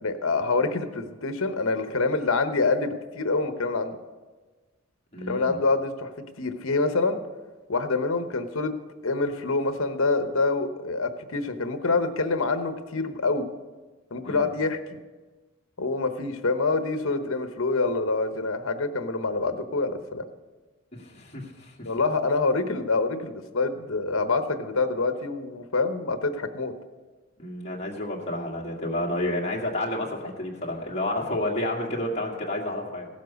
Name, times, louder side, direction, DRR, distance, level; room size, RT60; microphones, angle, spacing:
voice 1, 0.0-4.0 5.3-6.1 6.4-7.2 7.7-8.7 9.0-13.5 14.1-14.8 15.8-20.2 21.8-26.7, left 3 dB, 70° left, 8 dB, 1.0 m, -26 dB
voice 2, 5.1-5.6 14.2-14.5 20.9-21.9 27.4-33.1, left 1 dB, 30° left, -2 dB, 1.9 m, -30 dB
16.5 x 7.4 x 5.2 m, 1.3 s
head